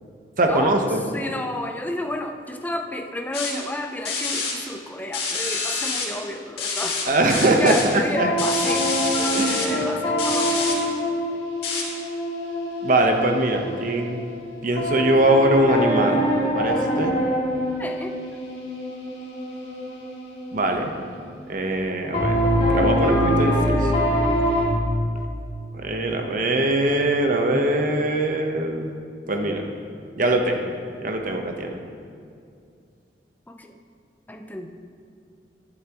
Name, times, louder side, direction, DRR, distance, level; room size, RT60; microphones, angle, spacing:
voice 1, 0.4-1.0 7.1-8.3 9.2-9.8 12.8-14.2 14.6-16.2 16.5-17.1 20.5-20.9 21.5-22.4 22.7-23.9 25.7-28.9 29.3-29.7 30.2-30.7 31.0-31.8, right 1 dB, 50° right, 3 dB, 1.0 m, -22 dB
voice 2, 1.1-8.9 9.7-10.7 17.8-18.1 33.5-33.8 34.3-34.7, left 1 dB, 10° left, 3 dB, 0.6 m, -31 dB
sound 1, 3.3-3.5 4.1-4.5 5.1-6.0 6.6-7.0 7.3-7.8 8.4-9.7 10.2-10.7 11.6-11.8, left 4 dB, 65° left, 2.3 m, -27 dB
sound 2, 8.2-14.4 14.8-21.3 22.1-24.7, equal, 35° left, 2.5 m, -24 dB
12.5 x 11.0 x 3.0 m, 2.4 s
head